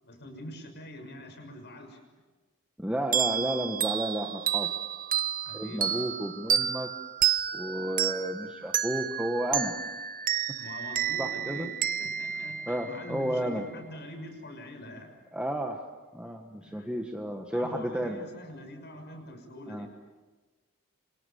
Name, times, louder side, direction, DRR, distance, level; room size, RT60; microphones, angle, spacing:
voice 1, 0.0-2.0 5.4-5.9 10.6-15.1 16.6-16.9 17.5-19.9, left 1 dB, 50° left, 4 dB, 6.4 m, -44 dB
voice 2, 2.8-4.7 5.5-6.9 7.5-9.7 10.5-10.6 11.2-11.7 12.7-13.7 15.3-15.9 16.1-18.2 19.7-19.9, equal, 5° right, 2 dB, 1.5 m, -32 dB
sound 1, 3.1-13.4, right 9 dB, 40° right, 0.9 m, -30 dB
28.0 x 27.5 x 7.1 m, 1.3 s
head